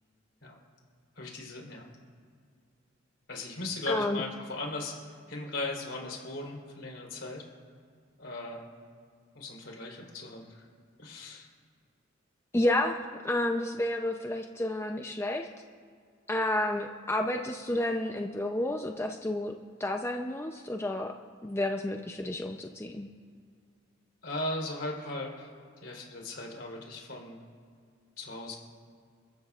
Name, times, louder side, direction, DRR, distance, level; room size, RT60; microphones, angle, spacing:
voice 1, 1.2-1.8 3.3-4.9 5.3-7.4 8.2-8.6 9.3-10.7 11.0-11.5 24.2-25.5 25.8-27.4 28.2-28.6, left 2 dB, 70° left, -1 dB, 3.7 m, -38 dB
voice 2, 3.9-4.2 12.5-15.5 16.3-19.5 19.8-21.1 21.4-23.1, left 1 dB, 15° left, 3 dB, 0.5 m, -30 dB
29.5 x 14.5 x 2.4 m, 2.2 s
head